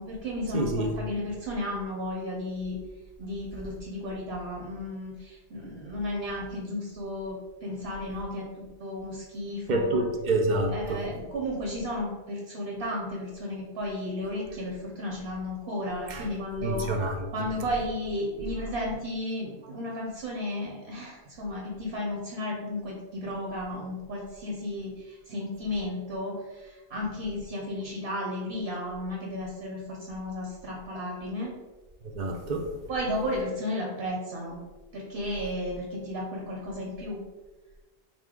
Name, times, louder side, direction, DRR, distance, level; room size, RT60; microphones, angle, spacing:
voice 1, 0.0-2.8 3.2-10.0 10.7-16.9 17.3-31.5 32.9-34.6 34.9-37.2, left 1 dB, 70° right, -2 dB, 1.0 m, -33 dB
voice 2, 0.5-0.9 9.7-11.0 16.1-16.3 16.6-17.3 32.0-32.7, right 2 dB, 55° right, 3 dB, 0.6 m, -27 dB
3.9 x 2.7 x 3.6 m, 1.3 s
omnidirectional pair, 1.1 m